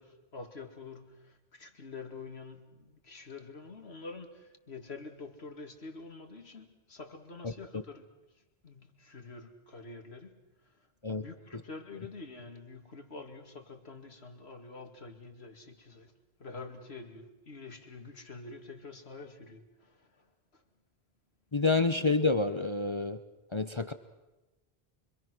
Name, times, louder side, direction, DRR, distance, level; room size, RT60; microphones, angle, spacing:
voice 1, 0.0-8.1 8.3-16.1 16.4-20.6, left 3 dB, 85° left, 2.5 m, -47 dB
voice 2, 21.5-23.2 23.5-23.9, left 3 dB, 30° left, 0.9 m, -28 dB
26.0 x 25.0 x 6.2 m
omnidirectional pair, 1.0 m